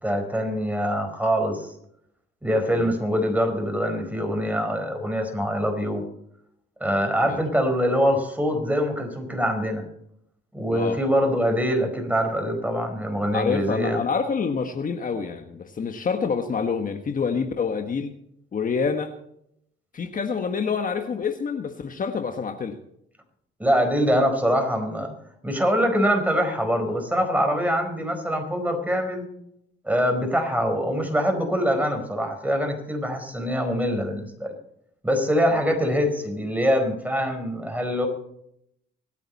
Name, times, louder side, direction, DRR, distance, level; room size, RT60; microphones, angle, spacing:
voice 1, 0.0-1.7 2.4-6.0 6.8-9.8 10.5-14.0 23.6-25.1 25.4-29.2 29.8-34.5 35.0-38.1, equal, 10° right, 4 dB, 4.8 m, -24 dB
voice 2, 13.3-18.1 18.5-19.1 19.9-22.8, left 5 dB, 45° left, 6 dB, 1.4 m, -27 dB
25.0 x 9.2 x 4.2 m, 0.73 s
cardioid pair, 90°, 20 cm